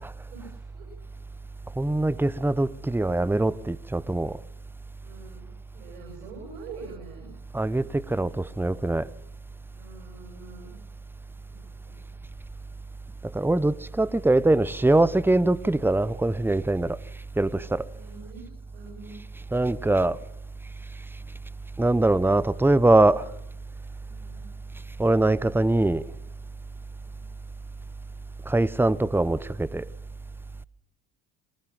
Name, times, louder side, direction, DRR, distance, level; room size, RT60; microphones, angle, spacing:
voice 1, 0.3-0.9 5.0-7.3 9.7-10.7 11.5-12.3 17.9-18.5 18.7-19.2 24.0-24.5 27.1-27.3, right 4 dB, 90° right, 7.9 m, -45 dB
voice 2, 1.8-4.4 7.5-9.1 13.2-17.0 17.4-17.8 19.5-20.2 21.8-23.3 25.0-26.1 28.4-29.9, right 2 dB, 5° right, 0.8 m, -23 dB
23.0 x 20.0 x 7.5 m
supercardioid pair, 85°, 43 cm